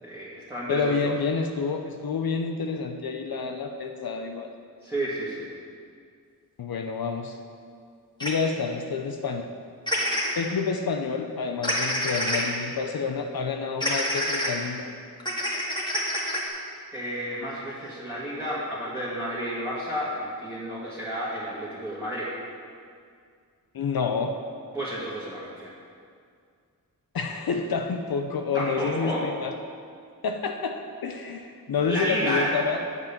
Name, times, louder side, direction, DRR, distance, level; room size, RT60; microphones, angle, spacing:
voice 1, 0.0-1.1 4.8-5.5 16.9-22.3 24.7-25.7 28.5-29.3 31.9-32.6, equal, 5° right, -9 dB, 2.1 m, -31 dB
voice 2, 0.7-4.5 6.6-7.4 8.2-9.5 10.4-14.9 23.7-24.4 27.1-29.5 30.2-32.8, left 5 dB, 70° left, 4 dB, 0.7 m, -28 dB
sound 1, 8.2-8.3 9.9-10.3 11.6-12.4 13.8-14.5 15.2-16.5, equal, 10° left, 2.0 m, -26 dB
7.9 x 5.5 x 7.1 m, 2.2 s
cardioid pair, 55°, 37 cm